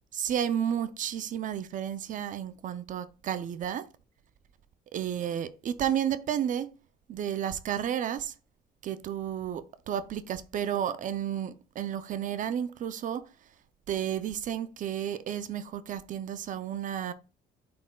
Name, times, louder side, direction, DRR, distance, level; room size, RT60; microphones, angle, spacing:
voice 1, 0.1-3.9 4.9-6.7 7.1-8.3 8.8-13.3 13.9-17.1, right 9 dB, 50° right, 0.5 m, -32 dB
9.7 x 4.3 x 2.2 m
cardioid pair, 110°, 17 cm